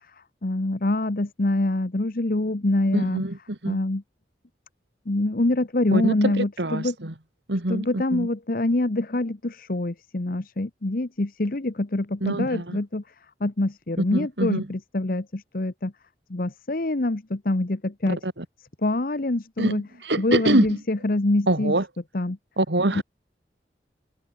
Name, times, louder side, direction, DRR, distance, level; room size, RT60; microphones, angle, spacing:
voice 1, 0.4-3.2 3.7-4.0 5.1-6.9 7.7-13.0 13.4-15.9 16.3-18.2 18.8-19.9 20.2-21.7 22.1-22.4 22.9-23.0, left 2 dB, 55° left, 1.1 m, -25 dB
voice 2, 2.9-3.8 5.9-7.1 7.5-8.3 12.2-12.8 14.1-14.7 18.1-18.4 19.6-20.8 21.5-21.9 22.6-23.0, right 1 dB, 80° right, 2.7 m, -25 dB
head